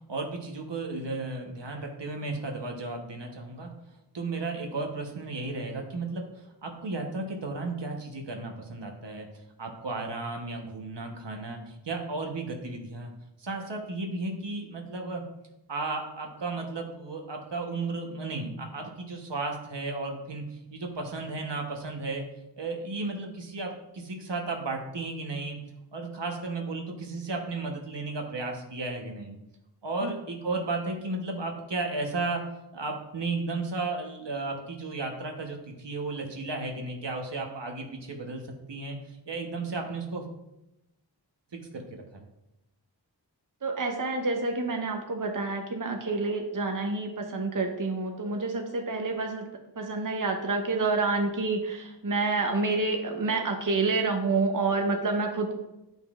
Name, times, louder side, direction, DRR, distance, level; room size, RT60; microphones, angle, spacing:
voice 1, 0.1-3.7 4.1-9.3 9.6-13.1 13.4-15.2 15.7-22.2 22.6-25.6 25.9-29.4 29.8-32.4 32.7-38.4 38.7-40.3 41.7-42.2, right 3 dB, 75° right, 2 dB, 1.1 m, -34 dB
voice 2, 43.6-49.5 49.8-55.5, right 3 dB, 45° right, 3 dB, 0.9 m, -28 dB
9.1 x 5.4 x 2.4 m, 0.92 s
wide cardioid pair, 40°, 43 cm